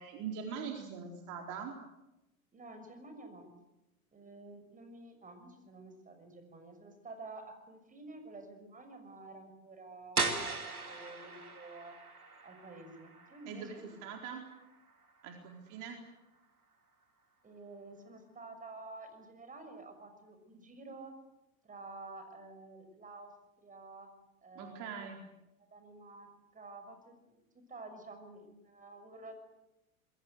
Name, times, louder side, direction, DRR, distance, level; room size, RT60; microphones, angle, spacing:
voice 1, 0.0-1.7 13.5-14.4 15.2-16.0 24.6-25.2, right 6 dB, 45° right, 3 dB, 4.3 m, -42 dB
voice 2, 2.5-3.5 4.1-12.0 12.4-13.9 17.4-21.1 21.6-24.1 24.4-25.0 25.7-29.4, right 2 dB, 20° right, 8 dB, 6.5 m, -50 dB
sound 1, 10.2-15.8, right 4 dB, 90° right, 2.9 m, -39 dB
27.0 x 22.0 x 8.0 m, 0.93 s
figure-of-eight pair, 90°, 43 cm